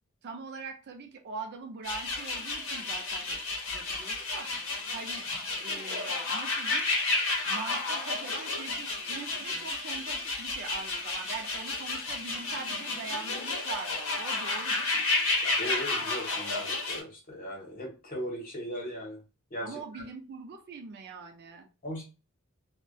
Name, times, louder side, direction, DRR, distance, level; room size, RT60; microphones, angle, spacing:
voice 1, 0.2-3.4 3.7-4.5 4.9-5.3 5.6-6.9 7.5-15.1 19.6-21.7, right 4 dB, 50° right, 5 dB, 0.4 m, -42 dB
sound 1, 1.8-17.0, left 3 dB, 65° left, 0.8 m, -32 dB
voice 2, 15.4-19.2 19.5-19.8 21.8-22.0, equal, 40° left, -1 dB, 0.9 m, -38 dB
2.6 x 2.1 x 2.2 m, 0.32 s
head